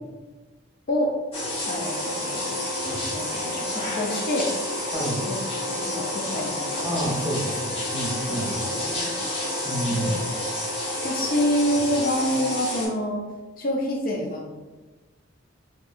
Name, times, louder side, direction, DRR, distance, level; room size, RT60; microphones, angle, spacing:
sound 1, 1.3-12.9, left 1 dB, 30° left, 1.2 m, -30 dB
voice 1, 1.6-2.5 3.1-4.5 5.3-5.4 5.8-6.9 8.3-8.4 8.6-9.1 9.9-10.3 11.0-13.2 13.6-14.5, equal, 45° left, -1 dB, 0.5 m, -27 dB
Wind instrument woodwind instrument, 1.6-12.2, equal, 45° right, 0.4 m, -38 dB
voice 2, 4.9-5.2 6.8-8.6 9.6-10.2, right 1 dB, 10° right, -5 dB, 0.8 m, -29 dB
4.3 x 2.8 x 2.5 m, 1.2 s
head